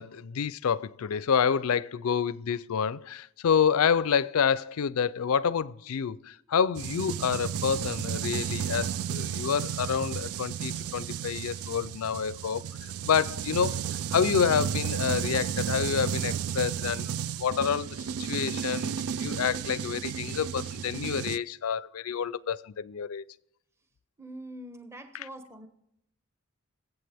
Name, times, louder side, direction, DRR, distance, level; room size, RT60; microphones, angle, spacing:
voice 1, 0.0-12.6 13.0-13.8 14.1-17.1 17.4-18.9 19.2-23.2 25.1-25.3, left 7 dB, 85° left, 0.4 m, -28 dB
sound 1, 6.7-21.4, right 8 dB, 85° right, 0.4 m, -33 dB
voice 2, 24.2-25.7, right 1 dB, 10° right, 0.8 m, -44 dB
24.0 x 8.0 x 3.4 m
head